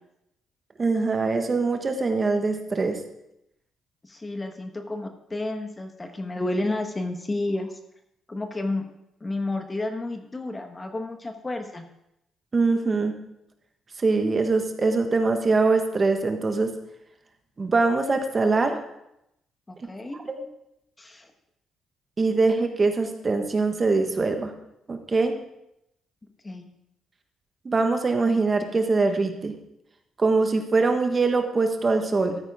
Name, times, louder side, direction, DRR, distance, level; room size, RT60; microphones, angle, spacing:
voice 1, 0.8-3.0 12.5-13.1 14.0-16.7 17.6-18.8 20.2-20.4 22.2-24.5 24.9-25.3 27.6-29.5 30.2-32.4, right 3 dB, 30° right, 5 dB, 1.3 m, -23 dB
voice 2, 4.0-7.8 8.3-8.8 9.2-11.8 19.7-20.2 21.0-21.3 26.4-26.7, left 2 dB, 20° left, 6 dB, 1.2 m, -31 dB
13.5 x 8.9 x 3.6 m, 0.82 s
cardioid pair, 90°, 0 cm